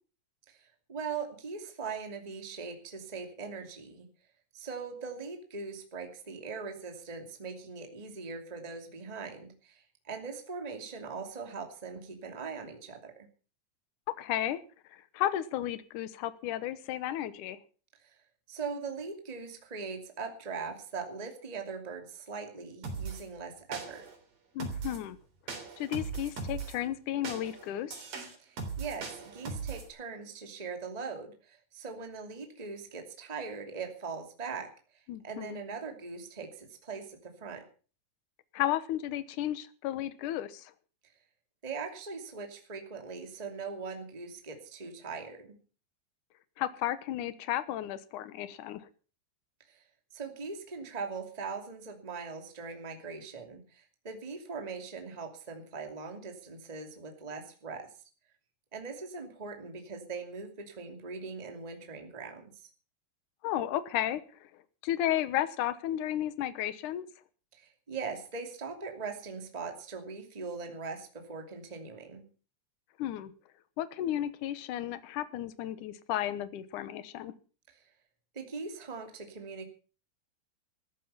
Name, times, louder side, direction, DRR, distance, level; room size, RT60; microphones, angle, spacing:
voice 1, 0.5-4.1 4.5-13.1 18.0-18.2 18.5-24.1 28.4-34.7 35.2-37.6 41.6-45.6 49.7-49.8 50.1-57.9 58.7-62.5 67.5-72.2 78.3-79.6, right 5 dB, 15° right, 4 dB, 1.6 m, -41 dB
voice 2, 14.1-14.6 14.9-17.6 24.6-25.2 25.8-28.0 35.1-35.6 38.5-40.7 46.6-48.8 63.4-64.2 64.8-67.1 73.0-73.3 73.8-77.3, left 12 dB, 75° left, 14 dB, 1.9 m, -33 dB
sound 1, 22.8-23.2 23.7-24.2 24.6-25.0 25.5-26.8 27.2-29.9, right 5 dB, 50° right, 4.9 m, -39 dB
14.0 x 14.0 x 5.6 m, 0.38 s
omnidirectional pair, 5.1 m